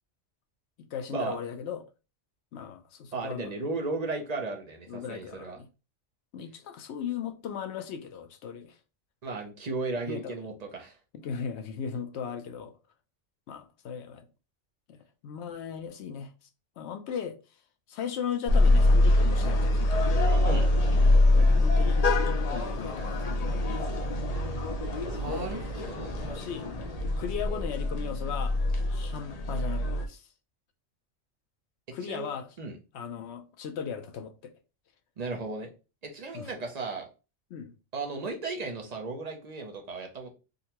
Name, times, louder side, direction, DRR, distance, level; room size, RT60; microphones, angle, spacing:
voice 1, 0.8-1.8 2.5-3.5 4.9-5.7 6.3-8.7 10.1-10.3 11.1-12.8 13.5-14.3 14.9-16.3 16.8-17.4 17.9-20.2 21.3-24.1 25.3-25.5 25.8-25.9 26.2-26.7 27.2-28.6 28.9-30.2 31.9-32.5 32.9-34.5 36.3-36.5 37.5-37.7, left 7 dB, 70° left, 0.8 m, -37 dB
voice 2, 3.1-5.6 9.2-11.0 20.4-20.7 25.0-26.2 32.0-32.3 32.6-32.7 35.2-35.7 36.0-37.1 37.9-40.3, right 3 dB, 45° right, 0.6 m, -35 dB
sound 1, 18.5-30.1, left 2 dB, 50° left, 0.5 m, -24 dB
3.7 x 2.1 x 2.8 m
omnidirectional pair, 1.2 m